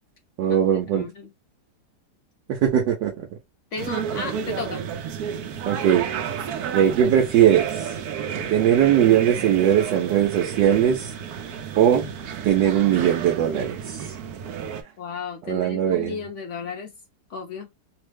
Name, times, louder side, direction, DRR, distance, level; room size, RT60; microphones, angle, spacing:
voice 1, 0.4-1.1 2.5-3.1 5.7-6.1 6.7-7.9 8.5-11.1 11.8-12.1 12.4-14.1 15.5-16.2, right 10 dB, 85° right, 1.3 m, -20 dB
voice 2, 0.9-1.3 3.7-4.8 15.0-16.9 17.3-17.7, left 4 dB, 65° left, 0.7 m, -33 dB
sound 1, 3.8-14.8, right 8 dB, 70° right, 1.0 m, -31 dB
3.2 x 2.1 x 3.2 m
omnidirectional pair, 1.9 m